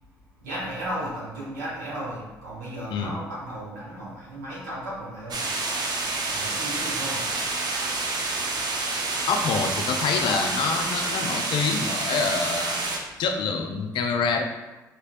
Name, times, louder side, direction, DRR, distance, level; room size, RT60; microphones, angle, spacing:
voice 1, 0.4-5.5 6.1-7.3 12.9-13.2, right 1 dB, 85° right, -7 dB, 1.5 m, -35 dB
sound 1, 5.3-13.0, right 3 dB, 50° right, 0.7 m, -28 dB
voice 2, 9.3-12.8 13.2-14.4, left 5 dB, 60° left, 5 dB, 0.5 m, -26 dB
5.0 x 3.2 x 2.4 m, 1.1 s
hypercardioid pair, 50°, 9 cm